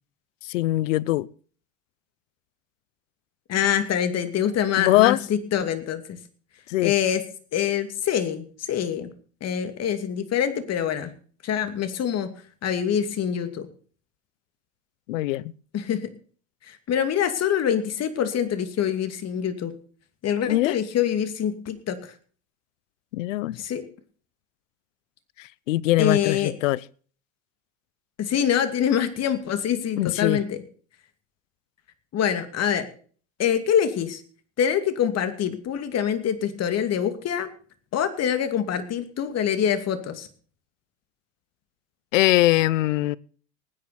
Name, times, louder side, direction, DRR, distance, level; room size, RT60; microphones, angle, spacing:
voice 1, 0.5-1.3 4.8-5.2 6.7-6.9 15.1-15.4 20.5-20.7 23.1-23.6 25.7-26.8 30.0-30.4 42.1-43.2, left 17 dB, 85° left, 0.7 m, -21 dB
voice 2, 3.5-6.2 6.8-7.2 7.5-9.1 9.4-11.1 11.4-12.3 12.6-13.7 15.7-16.1 16.7-19.7 20.2-22.1 23.5-23.8 26.0-26.5 28.2-30.6 32.1-32.8 33.4-34.2 34.6-37.5 37.9-40.3, left 9 dB, 40° left, 2.5 m, -25 dB
19.0 x 9.8 x 4.2 m
hypercardioid pair, 95°, 37 cm